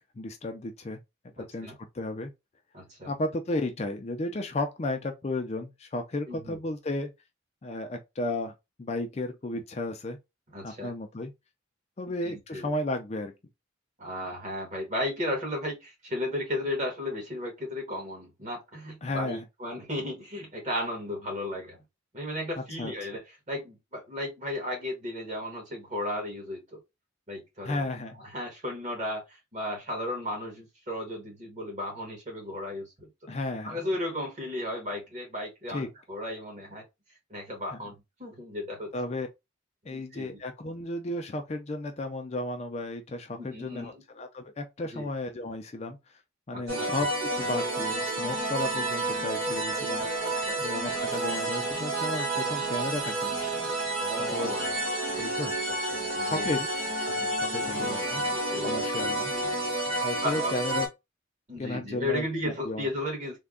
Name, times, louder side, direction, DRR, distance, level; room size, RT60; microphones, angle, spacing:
voice 1, 0.2-1.0 1.4-2.3 3.1-7.1 7.6-8.5 8.8-10.2 10.6-11.3 12.0-13.3 19.0-19.4 22.8-22.9 27.6-28.2 33.3-33.8 35.7-35.9 38.9-39.3 39.9-46.2 46.5-50.1 50.6-53.7 54.3-54.5 55.2-55.5 56.2-56.7 57.0-58.2 58.6-59.3 60.0-60.9 61.6-62.9, left 2 dB, 30° left, 0.4 m, -34 dB
voice 2, 2.7-3.1 6.3-6.6 9.5-9.6 10.5-10.9 12.2-12.7 14.0-21.8 22.1-26.8 27.3-27.9 28.3-33.1 33.6-36.8 37.3-38.9 39.9-40.4 43.4-44.0 44.9-45.1 46.5-46.9 49.7-50.7 54.0-54.9 55.4-56.5 57.5-59.5 60.2-60.5 61.5-63.4, left 1 dB, 35° right, 1.3 m, -35 dB
sound 1, 46.7-60.9, right 2 dB, 75° right, 2.1 m, -30 dB
3.4 x 2.2 x 3.6 m
head